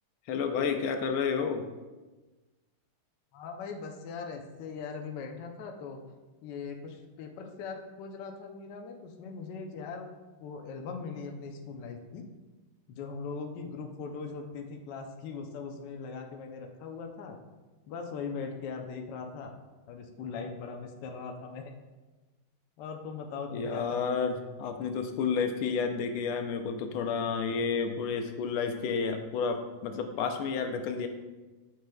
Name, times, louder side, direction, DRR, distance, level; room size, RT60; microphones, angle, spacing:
voice 1, 0.3-1.6 23.5-31.1, left 5 dB, 85° left, 7 dB, 1.5 m, -30 dB
voice 2, 3.3-6.0 6.4-10.1 10.4-12.2 12.9-17.4 17.9-19.5 19.9-21.7 22.8-24.4, left 5 dB, 65° left, 3 dB, 1.2 m, -40 dB
8.1 x 6.2 x 2.3 m, 1.2 s
omnidirectional pair, 2.3 m